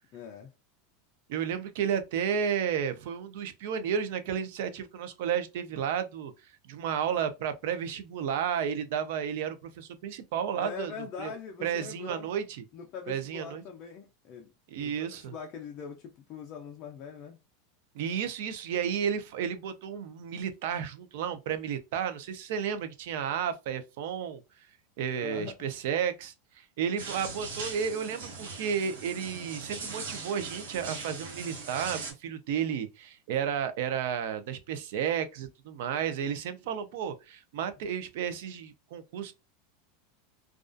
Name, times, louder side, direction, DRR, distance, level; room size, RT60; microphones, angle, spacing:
voice 1, 0.1-0.5 10.5-12.3 12.7-14.5 14.8-17.4 25.1-25.6, left 6 dB, 35° left, 0.4 m, -42 dB
voice 2, 1.3-6.3 6.7-10.9 11.2-11.3 11.6-12.6 13.1-13.6 14.7-15.3 17.9-24.4 25.0-39.3, right 8 dB, 60° right, 0.4 m, -32 dB
sound 1, 27.0-32.1, right 4 dB, 90° right, 1.0 m, -40 dB
2.3 x 2.3 x 2.4 m
supercardioid pair, 165°, 0 cm